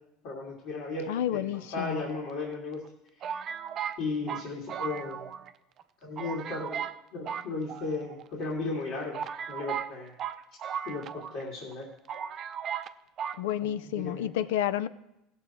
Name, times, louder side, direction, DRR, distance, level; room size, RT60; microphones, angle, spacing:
voice 1, 0.2-2.8 4.0-5.3 6.0-6.8 7.1-9.2 9.5-10.1 10.8-11.9 13.6-14.3, left 3 dB, 65° left, -3 dB, 2.6 m, -35 dB
voice 2, 1.1-2.0 13.4-14.9, left 11 dB, 85° left, 15 dB, 0.5 m, -30 dB
sound 1, 1.8-2.5 3.2-5.5 5.8-5.9 6.2-7.0 7.2-8.2 8.8-8.9 9.1-11.4 11.7-11.8 12.1-12.9 13.2-13.4, right 8 dB, 45° right, 0.6 m, -36 dB
16.5 x 6.4 x 4.5 m, 0.86 s
supercardioid pair, 110°, 0 cm